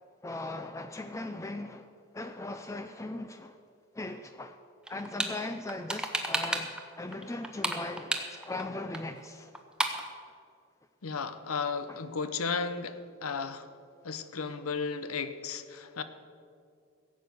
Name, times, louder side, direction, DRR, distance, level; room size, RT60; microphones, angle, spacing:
voice 1, 0.2-1.9 2.1-3.5 4.0-4.6 4.9-9.5 11.9-12.0, left 2 dB, 15° left, 0.4 m, -39 dB
sound 1, 4.9-5.3 5.7-6.8 7.1-8.6 8.9-9.0 9.3-9.4 9.6-10.1, right 1 dB, 5° right, 0.8 m, -31 dB
voice 2, 11.0-13.7 14.0-16.0, left 5 dB, 90° left, 0.8 m, -34 dB
16.0 x 8.1 x 6.9 m
head